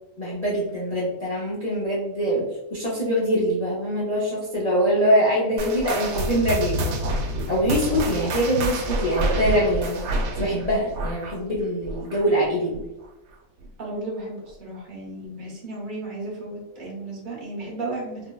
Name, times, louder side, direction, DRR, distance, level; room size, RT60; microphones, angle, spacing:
voice 1, 0.2-2.4 2.7-6.9 7.5-10.1 10.4-12.8, equal, 70° left, -6 dB, 0.3 m, -23 dB
sound 1, 5.6-12.4 12.7-13.0 13.6-13.7 14.5-14.6, right 1 dB, 90° right, 1.1 m, -28 dB
voice 2, 13.8-18.3, right 2 dB, 40° right, -4 dB, 0.9 m, -34 dB
3.5 x 2.1 x 2.3 m, 0.96 s
omnidirectional pair, 1.6 m